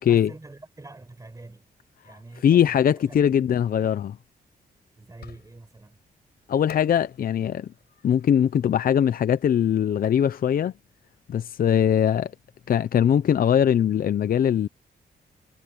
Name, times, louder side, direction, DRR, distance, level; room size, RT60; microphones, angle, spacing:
voice 1, 0.0-1.7 2.0-3.8 5.0-6.0, right 2 dB, 20° right, 7.4 m, -45 dB
voice 2, 2.4-4.2 6.5-7.7 8.0-10.7 11.3-12.3 12.7-14.7, left 9 dB, 65° left, 0.6 m, -21 dB
Fireworks, 5.2-5.9 6.7-9.8, left 9 dB, 80° left, 7.3 m, -48 dB
cardioid pair, 105°, 16 cm